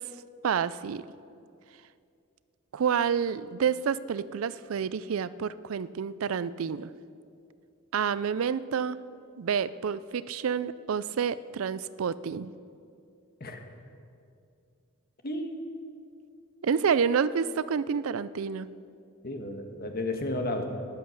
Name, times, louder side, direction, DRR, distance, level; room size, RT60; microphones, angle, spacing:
voice 1, 0.4-1.1 2.7-6.9 7.9-9.0 9.4-12.5 16.6-18.7, right 7 dB, 80° right, 17 dB, 0.4 m, -29 dB
voice 2, 15.2-15.6 19.2-20.6, left 1 dB, 50° left, 4 dB, 1.4 m, -32 dB
13.0 x 10.5 x 6.5 m, 2.5 s
head